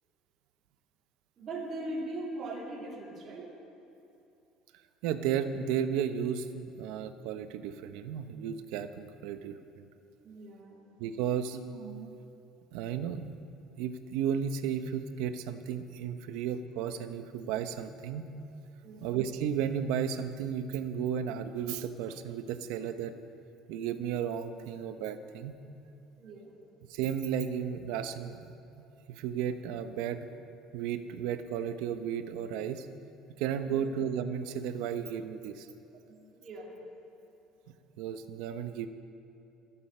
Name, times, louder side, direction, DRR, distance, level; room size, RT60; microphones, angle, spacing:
voice 1, 1.4-3.5 10.2-10.9 18.8-19.1 26.2-26.5 33.6-33.9 36.1-36.8, right 1 dB, 30° right, -4 dB, 2.2 m, -41 dB
voice 2, 5.0-9.9 11.0-12.2 12.7-13.4 13.8-18.3 19.0-23.1 23.7-25.5 26.9-28.5 29.1-30.3 30.7-32.9 33.4-35.7 38.0-38.9, right 8 dB, 75° right, 10 dB, 0.8 m, -34 dB
24.5 x 8.7 x 4.3 m, 2.8 s
cardioid pair, 180°, 0 cm